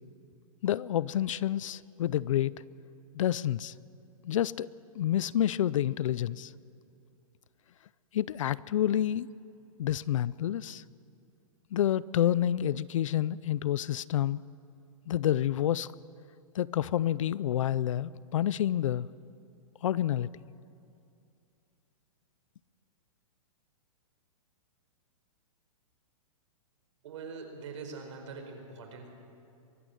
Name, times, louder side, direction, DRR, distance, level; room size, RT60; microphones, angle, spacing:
voice 1, 0.6-2.5 3.1-3.7 4.2-4.7 4.9-6.5 8.1-9.3 9.8-10.8 11.7-14.4 15.1-15.9 16.5-19.1 19.8-20.3, left 11 dB, 60° left, 20 dB, 0.5 m, -28 dB
voice 2, 27.0-29.1, right 4 dB, 55° right, 4 dB, 4.5 m, -43 dB
24.0 x 14.0 x 9.8 m, 2.6 s
hypercardioid pair, 170°, 18 cm